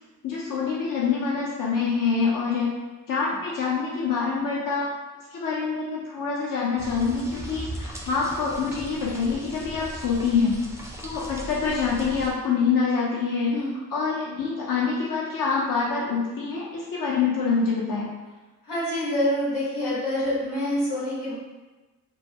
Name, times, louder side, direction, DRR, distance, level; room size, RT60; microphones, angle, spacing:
voice 1, 0.2-2.7 3.1-4.9 5.3-10.6 11.0-13.6 13.9-18.1, left 5 dB, 55° left, -5 dB, 0.7 m, -25 dB
sound 1, 6.8-12.3, right 1 dB, 10° right, 0.4 m, -38 dB
voice 2, 18.7-21.3, left 1 dB, 85° left, -8 dB, 1.0 m, -26 dB
2.2 x 2.2 x 2.8 m, 1.2 s
supercardioid pair, 50°, 39 cm